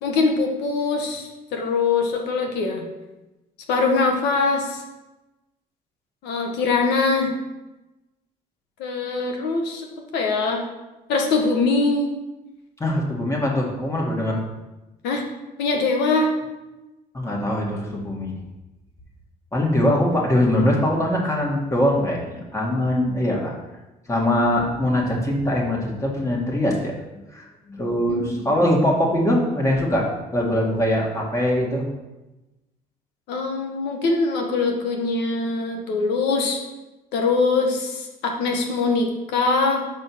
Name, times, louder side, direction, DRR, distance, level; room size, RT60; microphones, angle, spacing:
voice 1, 0.0-2.8 3.7-4.8 6.2-7.3 8.8-10.6 11.1-12.1 15.0-15.2 15.6-16.3 28.1-28.5 33.3-36.6 37.1-39.8, left 3 dB, 90° left, 2 dB, 1.4 m, -22 dB
voice 2, 12.8-14.4 17.1-18.3 19.5-23.5 24.1-26.9 27.3-30.1 30.3-31.8, left 1 dB, 15° left, -2 dB, 1.9 m, -22 dB
5.4 x 5.2 x 6.3 m, 1.0 s
cardioid pair, 110°, 17 cm